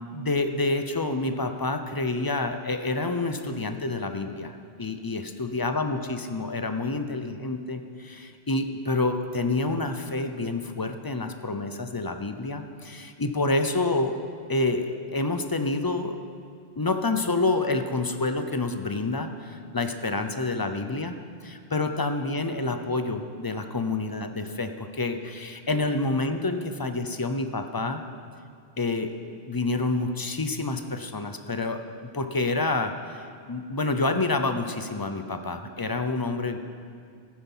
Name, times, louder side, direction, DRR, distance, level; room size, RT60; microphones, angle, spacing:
voice 1, 0.1-14.2 14.5-16.2 16.8-21.2 21.4-28.0 28.8-29.1 29.4-31.8 32.1-36.6, left 2 dB, 25° left, 7 dB, 0.5 m, -28 dB
14.5 x 10.0 x 5.6 m, 2.2 s
omnidirectional pair, 1.1 m